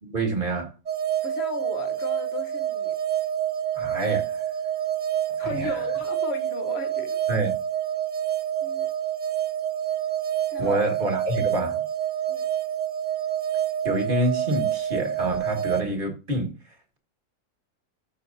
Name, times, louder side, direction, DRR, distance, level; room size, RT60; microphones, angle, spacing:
voice 1, 0.0-0.7 3.8-4.4 5.4-5.8 7.3-7.6 10.6-11.8 13.8-16.6, right 2 dB, 30° right, 1.9 m, -27 dB
sound 1, 0.9-15.8, right 10 dB, 85° right, 0.4 m, -27 dB
voice 2, 1.2-3.0 5.4-7.2 8.6-8.9 10.5-10.8 12.3-12.5, left 4 dB, 40° left, 1.2 m, -35 dB
13.5 x 6.4 x 2.7 m
omnidirectional pair, 1.9 m